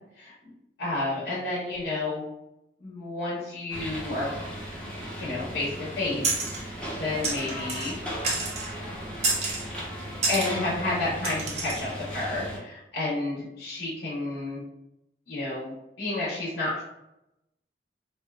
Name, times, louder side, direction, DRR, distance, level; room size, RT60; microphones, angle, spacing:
voice 1, 0.8-2.2 2.8-4.3 5.2-7.9 10.3-14.6 15.3-16.8, left 2 dB, 70° left, -8 dB, 0.8 m, -31 dB
sound 1, 3.7-12.6, equal, 5° left, 0.6 m, -37 dB
sound 2, 6.2-6.6 7.2-7.9 8.2-8.7 9.2-9.7 10.2-10.5 11.2-11.8, right 3 dB, 40° right, 0.5 m, -29 dB
2.5 x 2.2 x 2.3 m, 0.90 s
head